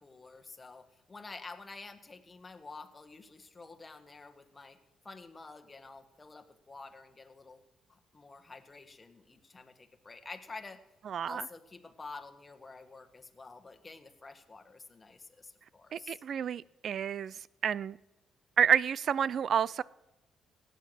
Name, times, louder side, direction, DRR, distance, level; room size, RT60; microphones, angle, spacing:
voice 1, 0.0-4.8 5.0-7.6 7.9-10.8 11.3-16.2, left 3 dB, 25° left, 1.5 m, -49 dB
voice 2, 11.1-11.4 15.9-17.4 17.6-18.0 18.6-19.8, right 8 dB, 60° right, 0.4 m, -29 dB
16.5 x 9.3 x 6.3 m
cardioid pair, 90°, 0 cm